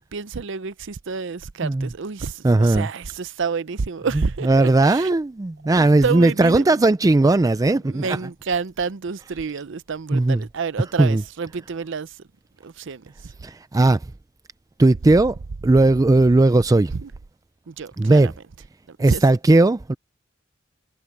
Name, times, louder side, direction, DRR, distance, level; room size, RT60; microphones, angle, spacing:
voice 1, 0.0-5.2 5.7-6.8 7.9-12.2 12.6-13.3 16.9-17.1 17.7-18.3 18.9-19.2, right 5 dB, 70° right, 0.6 m, -29 dB
voice 2, 2.4-2.9 4.4-8.2 10.1-10.4 11.0-11.2 13.4-14.0 14.8-15.4 15.6-16.9 18.0-18.3 19.0-19.9, right 2 dB, 20° right, 0.4 m, -17 dB
head